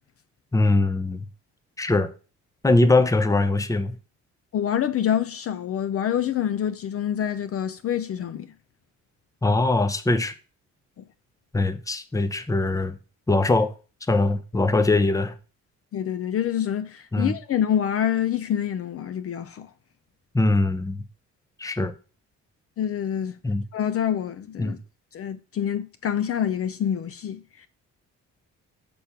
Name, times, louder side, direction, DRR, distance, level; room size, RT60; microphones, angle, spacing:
voice 1, 0.5-1.3 1.8-2.1 2.6-3.9 9.4-10.3 11.5-13.0 13.3-13.7 14.1-15.3 17.1-17.3 20.3-21.0 21.6-21.9 23.4-23.6 24.6-24.8, left 2 dB, 10° left, 0.7 m, -21 dB
voice 2, 4.5-8.5 15.9-19.7 22.8-23.3 23.7-24.8 25.1-27.7, left 9 dB, 50° left, 0.5 m, -26 dB
6.9 x 3.4 x 5.7 m
cardioid pair, 90°, 30 cm